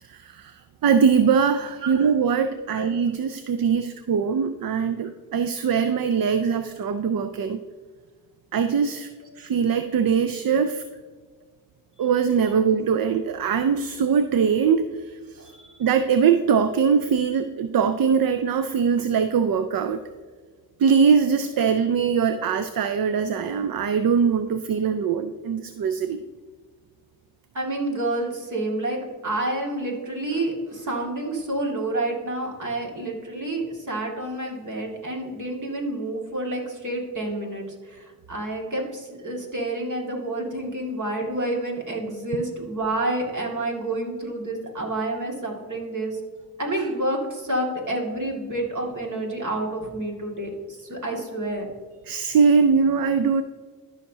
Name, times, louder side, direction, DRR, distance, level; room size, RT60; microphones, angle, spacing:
voice 1, 0.8-7.6 8.5-9.1 9.4-10.8 12.0-14.8 15.8-20.0 20.8-26.2 52.1-53.4, right 6 dB, 75° right, 10 dB, 0.5 m, -21 dB
voice 2, 27.5-46.2 46.6-51.7, right 1 dB, 60° right, -1 dB, 2.1 m, -29 dB
13.0 x 5.8 x 2.8 m, 1.5 s
cardioid pair, 45°, 35 cm